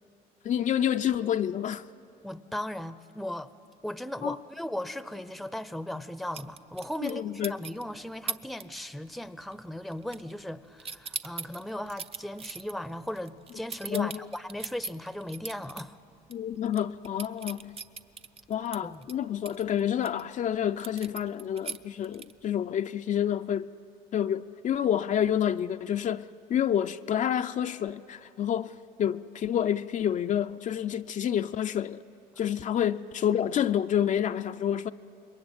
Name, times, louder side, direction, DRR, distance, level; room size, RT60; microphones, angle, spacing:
voice 1, 0.4-1.8 4.2-4.4 7.0-7.6 13.9-14.3 16.3-17.8 18.5-23.7 24.1-32.0 32.4-34.9, left 9 dB, 45° left, 0.5 m, -28 dB
voice 2, 2.2-3.5 3.8-16.0 18.8-19.0 32.7-32.9, left 1 dB, ahead, 0.7 m, -37 dB
sound 1, 6.3-7.2 7.4-7.8 8.3-8.6 8.9-9.3 9.5-10.5 10.8-15.8 16.2-16.3 16.7-20.2 20.8-22.5, right 5 dB, 35° right, 0.8 m, -39 dB
27.0 x 22.0 x 9.0 m
cardioid pair, 110°, 17 cm